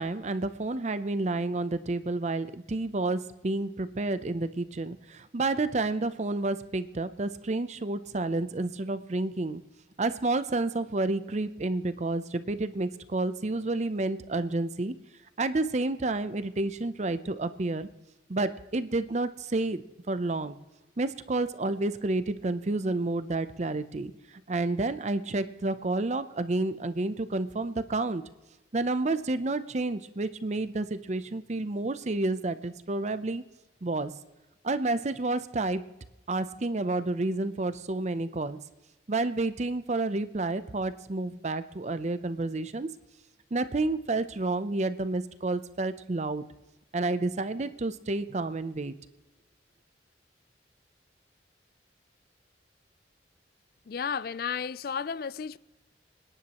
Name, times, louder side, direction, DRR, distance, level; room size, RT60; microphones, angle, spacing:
voice 1, 0.0-9.6 10.0-14.9 15.4-17.9 18.3-20.6 21.0-24.1 24.5-28.2 28.7-33.4 33.8-34.1 34.6-35.8 36.3-38.6 39.1-42.9 43.5-46.4 46.9-48.9, right 2 dB, 40° right, 0.6 m, -30 dB
voice 2, 53.9-55.6, left 6 dB, 55° left, 0.4 m, -33 dB
27.0 x 10.5 x 3.0 m
head